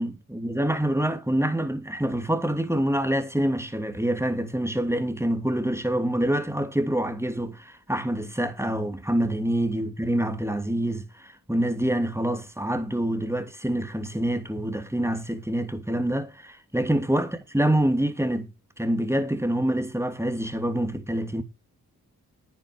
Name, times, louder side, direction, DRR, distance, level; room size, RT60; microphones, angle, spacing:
voice 1, 0.0-18.5 18.8-21.4, right 1 dB, 5° right, 2.8 m, -26 dB
10.5 x 9.2 x 6.5 m
cardioid pair, 40°, 37 cm